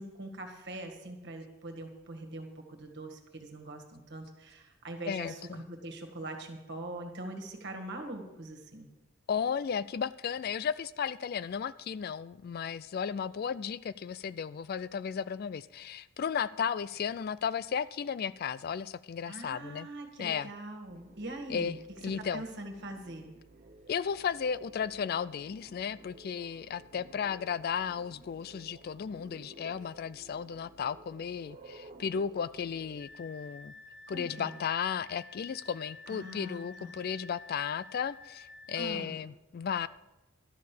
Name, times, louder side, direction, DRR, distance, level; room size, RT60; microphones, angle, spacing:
voice 1, 0.0-8.9 19.3-21.8 22.2-23.3 34.1-34.6 36.1-36.9 38.7-39.2, right 1 dB, 55° right, 4 dB, 1.9 m, -42 dB
voice 2, 5.1-5.6 9.3-19.9 20.2-20.5 21.5-21.8 22.0-22.4 23.9-33.7 34.1-39.9, left 7 dB, 45° left, 16 dB, 0.3 m, -34 dB
sound 1, 20.9-33.0, right 2 dB, 35° right, 0.7 m, -55 dB
sound 2, 33.0-38.9, left 3 dB, 15° right, 2.0 m, -51 dB
12.5 x 6.5 x 8.3 m, 1.0 s
head